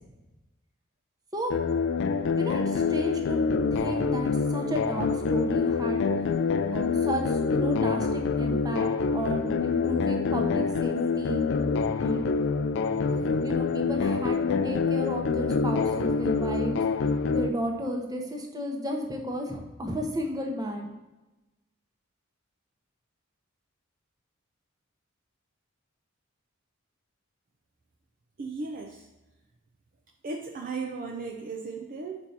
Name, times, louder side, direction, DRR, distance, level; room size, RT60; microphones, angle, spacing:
sound 1, 1.5-17.5, left 5 dB, 60° left, 0.4 m, -26 dB
voice 1, 2.4-3.4 3.7-6.1 6.7-11.4 12.0-12.3 12.9-16.8 17.3-20.9, equal, 20° right, 2 dB, 0.9 m, -33 dB
voice 2, 28.4-29.0 30.2-32.2, right 4 dB, 45° right, 2 dB, 0.5 m, -36 dB
5.3 x 4.5 x 5.8 m, 1.1 s
head